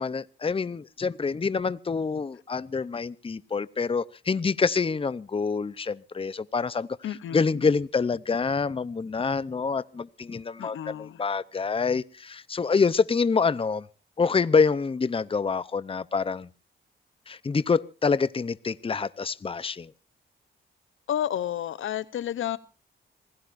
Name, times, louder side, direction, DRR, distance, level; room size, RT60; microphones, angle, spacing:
voice 1, 0.0-6.9 7.3-13.8 14.2-16.5 17.3-19.9, left 5 dB, 25° left, 0.7 m, -26 dB
voice 2, 7.0-7.8 10.6-11.2 21.1-22.6, left 10 dB, 80° left, 0.8 m, -31 dB
26.5 x 16.5 x 2.6 m
cardioid pair, 70°, 20 cm